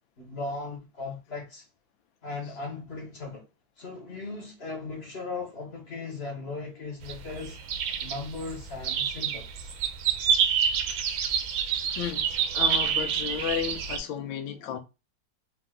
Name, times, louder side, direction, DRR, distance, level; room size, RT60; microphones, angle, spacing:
voice 1, 0.2-1.6 2.2-3.5 3.8-7.6 8.0-9.7, left 3 dB, 35° left, 1.3 m, -37 dB
sound 1, 7.0-14.0, right 7 dB, 80° right, 1.4 m, -28 dB
voice 2, 11.9-14.8, left 9 dB, 85° left, 1.5 m, -33 dB
4.3 x 2.8 x 3.7 m
omnidirectional pair, 2.1 m